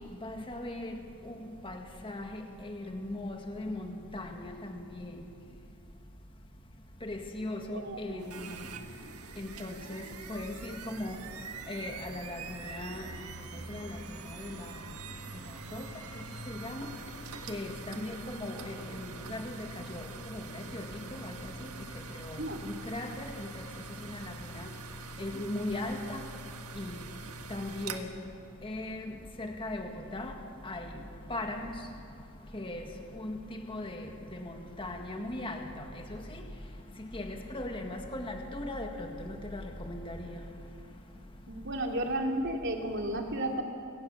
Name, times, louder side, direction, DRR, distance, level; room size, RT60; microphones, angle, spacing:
voice 1, 0.5-0.9 1.6-1.8 2.0-2.3 2.6-3.8 4.1-4.3 7.0-8.5 9.4-10.0 10.3-10.5 11.0-11.1 11.7-12.4 12.7-13.0 13.7-13.9 15.7-15.8 16.6-16.9 17.5-18.7 19.3-19.4 20.7-20.8 22.9-23.1 25.2-26.2 26.8-26.9 27.5-28.0 28.6-29.0 29.4-30.3 30.7-30.8 31.3-31.6 32.5-32.8 33.2-33.4 33.7-34.0 34.8-35.6 37.1-38.9 39.5-39.6 39.9-40.2, left 1 dB, 25° left, 3 dB, 1.9 m, -37 dB
voice 2, 7.7-8.3 22.4-22.6 41.5-43.6, right 1 dB, 55° right, 2 dB, 2.8 m, -33 dB
sound 1, 8.2-28.0, right 3 dB, 85° right, 1.7 m, -44 dB
29.0 x 18.0 x 7.2 m, 2.5 s
head